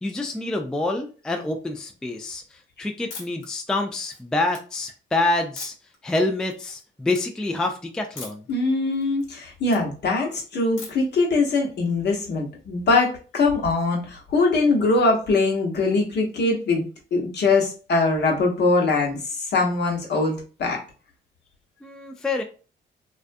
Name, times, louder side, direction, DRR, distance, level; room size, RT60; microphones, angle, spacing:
voice 1, 0.0-5.7 6.0-8.5 21.8-22.4, left 2 dB, 5° left, 4 dB, 0.3 m, -27 dB
sound 1, 3.1-3.5 3.9-4.6 5.6-6.0 6.4-6.8 7.1-7.2 8.2-8.5 8.9-9.8 10.8-11.1, left 3 dB, 80° left, 1.0 m, -40 dB
voice 2, 8.5-16.8 17.1-20.8, left 3 dB, 60° left, 0 dB, 0.9 m, -22 dB
2.4 x 2.2 x 2.5 m, 0.36 s
cardioid pair, 90°, 20 cm